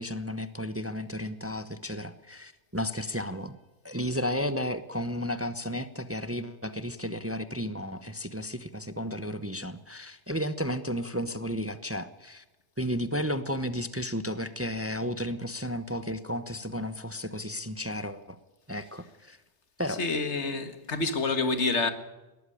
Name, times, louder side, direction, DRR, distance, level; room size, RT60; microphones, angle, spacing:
voice 1, 0.0-3.6 3.8-12.4 12.8-18.4 18.7-19.4 19.8-20.0, equal, 15° right, 0.8 m, -33 dB
voice 2, 20.0-21.9, left 3 dB, 80° left, 2.0 m, -28 dB
19.5 x 13.5 x 10.0 m
omnidirectional pair, 1.2 m